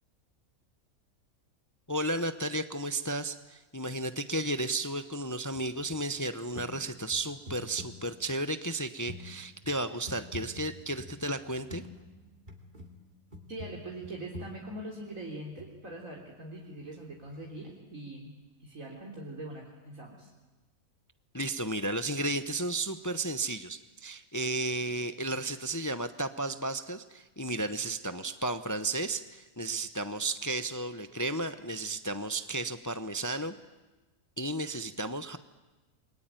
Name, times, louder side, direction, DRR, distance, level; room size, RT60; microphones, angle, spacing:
voice 1, 1.9-11.8 21.3-33.5 34.4-35.4, right 2 dB, 15° left, 9 dB, 0.7 m, -33 dB
sound 1, 5.5-6.2 6.6-6.8 7.1-8.4 9.1-12.9 13.3-16.0 17.3-17.4, left 1 dB, 35° right, 2.9 m, -47 dB
voice 2, 13.5-20.3, right 1 dB, 65° right, -2 dB, 4.0 m, -42 dB
28.5 x 22.5 x 9.1 m, 1.1 s
omnidirectional pair, 1.5 m